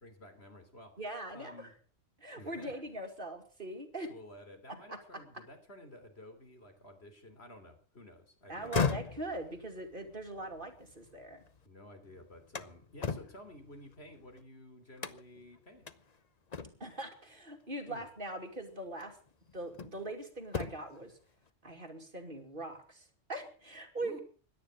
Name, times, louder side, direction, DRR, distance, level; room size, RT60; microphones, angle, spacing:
voice 1, 0.0-0.9 1.3-1.7 2.3-2.7 4.1-9.0 11.6-15.9 17.9-18.1 24.0-24.2, left 1 dB, 55° left, 7 dB, 3.6 m, -52 dB
voice 2, 1.0-1.7 2.2-4.1 4.9-5.2 8.5-11.4 16.8-19.2 19.5-21.2 21.6-24.2, right 2 dB, 45° right, 5 dB, 2.9 m, -41 dB
sound 1, 8.5-11.6 12.0-14.4 15.0-15.5 15.9-16.0 16.5-17.0 18.3-18.4 19.0-20.1 20.4-21.0, left 5 dB, 35° left, 0.9 m, -38 dB
17.0 x 11.5 x 6.4 m, 0.40 s
omnidirectional pair, 1.3 m